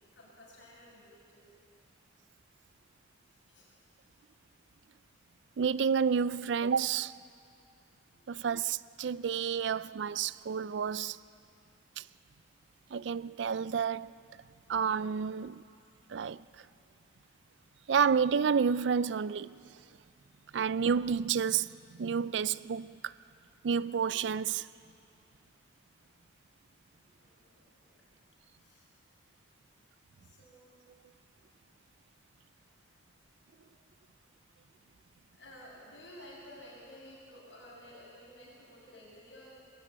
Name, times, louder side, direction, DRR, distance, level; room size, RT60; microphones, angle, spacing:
voice 1, 0.1-1.6 3.3-3.7 8.1-8.8 17.0-17.1 19.9-20.0 20.3-20.7 27.0-28.0 28.6-28.9 30.2-30.7 32.6-32.9 33.5-33.6 35.3-39.5, left 1 dB, 85° left, 7.1 m, -54 dB
voice 2, 5.6-7.1 8.3-11.2 12.0-12.1 12.9-14.1 14.7-15.6 16.1-16.4 17.9-19.6 20.5-21.7 22.0-23.0 23.6-24.7, right 6 dB, 80° right, 0.4 m, -30 dB
22.0 x 14.0 x 8.7 m
head